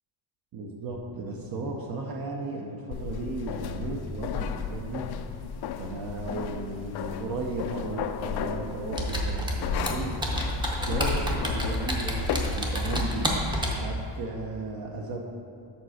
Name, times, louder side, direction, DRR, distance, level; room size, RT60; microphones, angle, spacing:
voice 1, 0.5-5.0 5.8-10.1 10.7-13.3 13.7-15.2, right 2 dB, 55° right, 0 dB, 0.8 m, -35 dB
sound 1, 2.9-13.6, left 7 dB, 65° left, 0.5 m, -34 dB
Computer keyboard, 9.0-13.9, equal, 10° right, 0.7 m, -29 dB
7.4 x 4.3 x 6.3 m, 2.7 s
cardioid pair, 175°, 43 cm